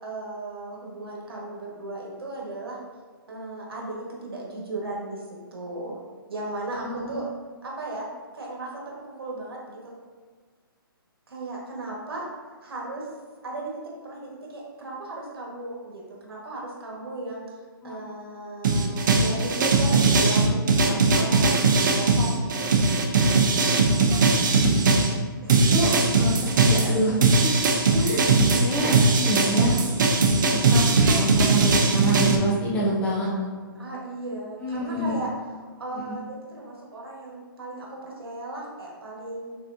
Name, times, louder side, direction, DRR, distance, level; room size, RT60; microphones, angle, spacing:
voice 1, 0.0-2.8 3.3-5.2 5.5-6.0 6.3-7.3 7.6-8.1 8.3-9.9 11.3-12.2 12.6-13.1 13.4-17.4 17.8-22.8 25.4-25.6 27.9-28.3 33.7-35.3 35.8-39.6, right 2 dB, 85° right, -3 dB, 1.4 m, -35 dB
voice 2, 6.7-7.1 17.8-18.0 20.9-21.0 24.6-24.8 25.7-27.5 28.0-28.2 28.6-29.8 30.5-30.8 31.1-33.5 34.6-35.2 35.9-36.2, equal, 10° left, -5 dB, 0.6 m, -28 dB
sound 1, 18.6-25.1 25.5-32.4, right 3 dB, 55° right, 0.6 m, -20 dB
4.2 x 3.9 x 2.6 m, 1.5 s
hypercardioid pair, 150°, 12 cm